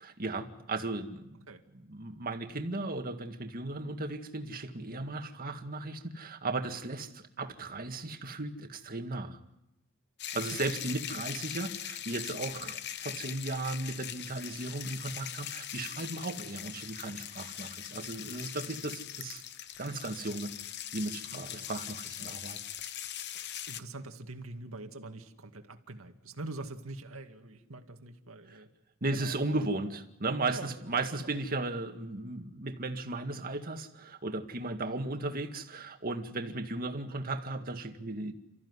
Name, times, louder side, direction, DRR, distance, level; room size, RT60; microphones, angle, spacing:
voice 1, 0.0-1.3 1.9-9.4 10.3-19.4 19.8-20.5 20.9-22.6 29.0-38.3, right 2 dB, 45° right, 6 dB, 2.0 m, -36 dB
sound 1, 10.2-23.8, left 11 dB, 55° left, 0.9 m, -41 dB
voice 2, 18.3-18.7 21.3-21.7 22.2-22.3 23.3-28.7 29.1-29.7 30.5-30.7 31.1-31.4 36.3-36.6, right 2 dB, 85° right, 6 dB, 2.1 m, -44 dB
30.0 x 14.5 x 9.8 m, 0.89 s
head